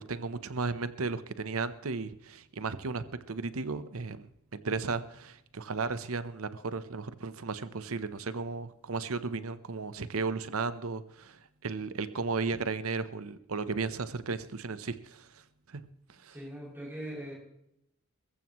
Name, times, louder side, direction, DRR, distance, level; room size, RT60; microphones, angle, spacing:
voice 1, 0.0-15.4 15.7-15.8 16.1-16.3, right 4 dB, 70° right, 13 dB, 0.8 m, -35 dB
voice 2, 16.3-17.3, right 1 dB, 10° right, -4 dB, 6.8 m, -40 dB
22.0 x 14.5 x 3.1 m, 0.77 s
head